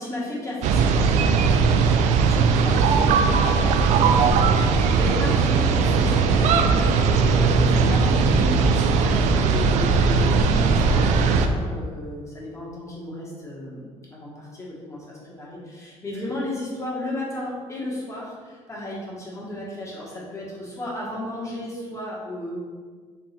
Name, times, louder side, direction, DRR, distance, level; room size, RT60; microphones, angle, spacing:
voice 1, 0.0-3.3 3.6-22.6, left 1 dB, 25° left, -5 dB, 1.3 m, -34 dB
sound 1, 0.6-11.5, right 5 dB, 75° right, 0.4 m, -19 dB
3.6 x 3.0 x 4.3 m, 1.5 s
cardioid pair, 125°, 12 cm